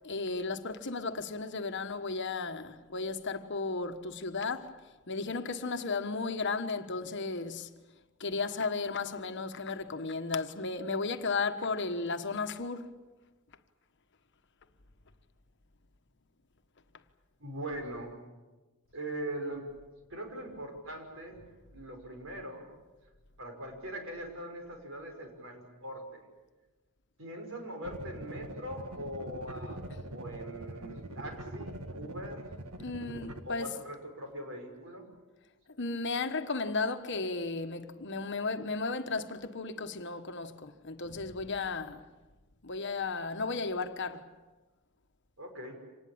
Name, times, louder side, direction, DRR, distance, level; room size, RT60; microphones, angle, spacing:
voice 1, 0.0-4.8 5.1-7.7 8.2-12.9 32.8-33.8 35.8-42.0 42.6-44.3, left 4 dB, 55° left, 1.3 m, -34 dB
voice 2, 17.4-18.2 18.9-19.6 20.1-21.4 21.7-22.7 23.4-26.2 27.2-32.4 33.4-35.0 45.4-45.8, right 1 dB, 65° right, 5.8 m, -41 dB
sound 1, 27.8-33.4, right 1 dB, 90° right, 2.0 m, -43 dB
26.5 x 19.5 x 8.7 m
head